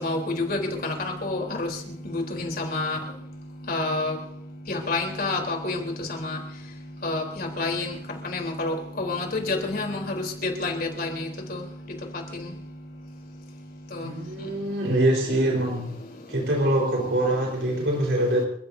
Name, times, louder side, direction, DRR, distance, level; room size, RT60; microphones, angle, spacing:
voice 1, 0.0-0.9 1.2-1.7 2.4-3.0 3.7-4.1 4.7-5.8 6.2-6.4 7.0-7.9 8.3-10.1 10.4-10.7 11.0-11.1, left 2 dB, 55° left, 1 dB, 3.7 m, -28 dB
voice 2, 14.0-15.9 16.3-18.5, right 1 dB, 90° right, -2 dB, 4.4 m, -24 dB
29.5 x 15.0 x 2.7 m, 0.74 s
head